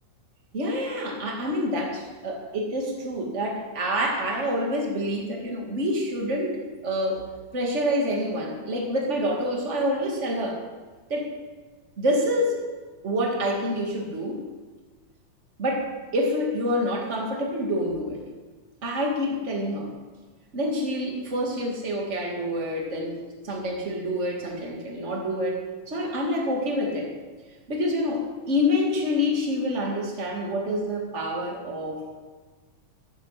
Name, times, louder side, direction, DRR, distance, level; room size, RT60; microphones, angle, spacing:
voice 1, 0.5-6.6 6.8-7.2 7.5-10.6 11.1-11.3 12.0-12.6 13.0-14.4 15.6-18.2 18.8-19.9 20.5-27.1 27.7-32.1, equal, 25° right, 0 dB, 2.0 m, -27 dB
14.0 x 10.0 x 5.8 m, 1.4 s
omnidirectional pair, 3.8 m